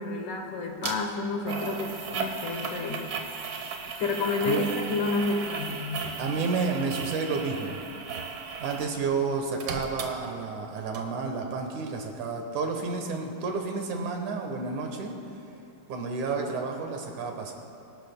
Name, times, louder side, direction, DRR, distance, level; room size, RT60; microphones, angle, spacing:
voice 1, 0.0-3.1 3.8-6.2, left 3 dB, 75° left, 3 dB, 2.5 m, -30 dB
sound 1, 0.8-0.9 1.5-8.9 9.2-10.7 10.9-11.0, right 5 dB, 90° right, 1.1 m, -36 dB
voice 2, 6.2-7.8 8.6-15.2 15.9-17.5, right 4 dB, 70° right, 2 dB, 2.5 m, -30 dB
24.0 x 12.0 x 2.2 m, 2.9 s
omnidirectional pair, 3.8 m